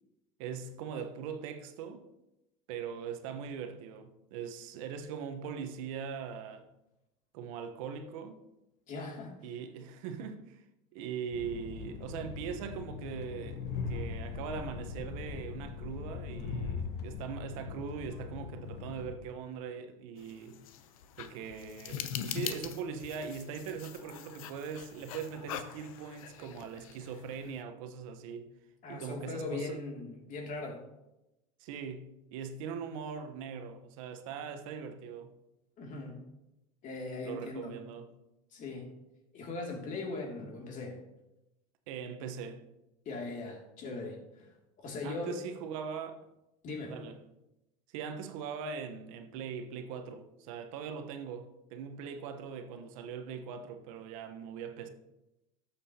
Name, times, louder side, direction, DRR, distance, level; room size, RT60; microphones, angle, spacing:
voice 1, 0.4-2.1 2.7-6.7 7.3-8.4 9.4-10.6 10.9-20.6 21.2-28.5 28.9-29.8 31.6-35.3 37.2-38.2 41.9-42.6 45.0-46.2 46.9-47.1 47.9-54.9, right 6 dB, 75° right, 1.1 m, -41 dB
voice 2, 8.9-9.4 28.8-30.8 35.8-36.2 36.8-37.7 38.5-38.9 39.3-41.0 43.1-44.5 44.8-45.4 46.6-47.0, left 3 dB, 45° left, 2.5 m, -39 dB
Train, 11.3-19.1, left 5 dB, 65° left, 1.2 m, -40 dB
sound 1, 20.2-27.6, left 10 dB, 85° left, 0.7 m, -43 dB
12.5 x 7.2 x 2.8 m
supercardioid pair, 95°, 18 cm